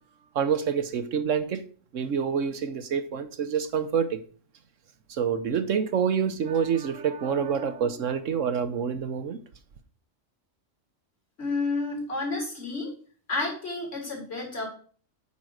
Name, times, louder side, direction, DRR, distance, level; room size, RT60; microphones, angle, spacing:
voice 1, 0.3-1.6 1.9-4.2 5.1-9.4, right 7 dB, 75° right, 1.2 m, -27 dB
voice 2, 11.4-12.9 13.3-14.7, left 3 dB, 55° left, 4.4 m, -30 dB
9.6 x 4.8 x 6.4 m
omnidirectional pair, 1.3 m